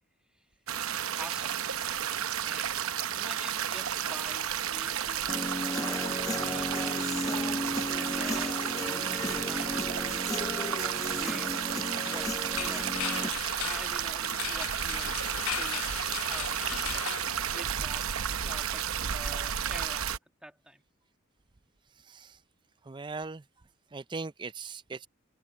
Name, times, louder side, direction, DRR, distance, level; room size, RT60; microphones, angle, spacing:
sound 1, 0.7-20.2, right 9 dB, 80° right, 0.8 m, -32 dB
voice 1, 1.2-1.5 2.4-2.7 3.1-7.1 8.0-8.7 9.0-15.2 15.5-17.1 17.5-18.1 18.4-20.1 20.4-20.8, right 1 dB, 5° right, 2.2 m, -47 dB
Human voice / Guitar, 5.3-13.3, left 1 dB, 15° left, 1.0 m, -35 dB
sound 2, 12.0-18.0, left 12 dB, 85° left, 0.5 m, -38 dB
voice 2, 22.0-22.4 22.8-23.4 23.9-25.1, right 4 dB, 20° right, 0.4 m, -40 dB
head